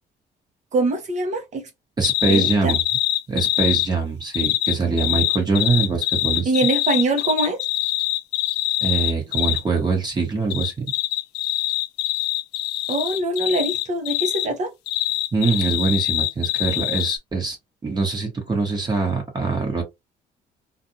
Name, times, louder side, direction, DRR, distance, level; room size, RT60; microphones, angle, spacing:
voice 1, 0.7-1.6 2.3-2.8 6.4-7.6 12.9-14.7, right 2 dB, 45° right, 0.9 m, -23 dB
sound 1, 2.0-3.9 4.3-9.6 10.5-14.5 14.9-17.2, left 15 dB, 85° left, 0.4 m, -24 dB
voice 2, 2.0-2.8 3.3-6.5 8.8-10.7 15.3-17.6 17.8-19.8, right 4 dB, 25° right, 1.2 m, -23 dB
2.5 x 2.4 x 2.7 m
cardioid pair, 110°, 17 cm